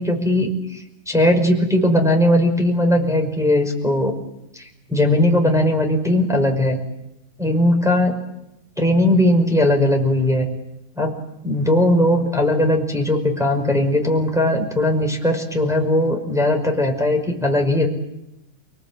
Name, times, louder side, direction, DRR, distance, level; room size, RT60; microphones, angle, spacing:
voice 1, 0.0-4.1 4.5-6.8 7.4-8.2 8.8-10.5 11.0-11.1 11.4-17.9, left 1 dB, ahead, 1 dB, 5.1 m, -18 dB
29.5 x 20.5 x 9.0 m, 0.86 s
omnidirectional pair, 4.5 m